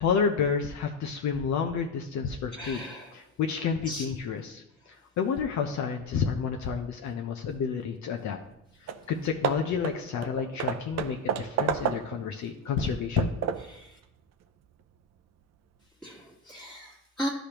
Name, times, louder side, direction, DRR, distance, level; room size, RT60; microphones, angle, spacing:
voice 1, 0.0-2.8 3.1-4.6 5.2-8.4 9.1-13.3, left 6 dB, 70° left, 3 dB, 0.7 m, -29 dB
voice 2, 2.5-3.2 3.9-4.0 13.7-14.0 16.0-17.3, equal, ahead, -6 dB, 1.4 m, -37 dB
Hammer / Wood, 8.5-8.6 8.9-9.1 9.4-12.3 12.8-13.8, right 8 dB, 60° right, 0.5 m, -32 dB
11.5 x 5.1 x 2.9 m, 0.81 s
cardioid pair, 90°, 30 cm